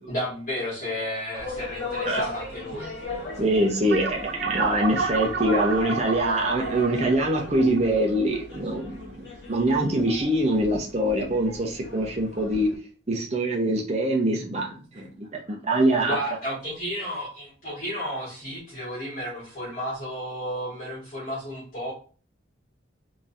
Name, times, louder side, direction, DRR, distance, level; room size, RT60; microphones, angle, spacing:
voice 1, 0.1-2.9 15.5-15.6 16.0-21.9, equal, 40° left, -8 dB, 1.8 m, -32 dB
sound 1, 1.3-12.8, left 3 dB, 60° left, 1.4 m, -37 dB
voice 2, 3.4-12.7 13.1-16.2, right 1 dB, 35° right, -1 dB, 0.8 m, -24 dB
sound 2, 3.9-8.7, right 5 dB, 55° right, 0.4 m, -31 dB
3.6 x 3.0 x 2.7 m, 0.40 s
head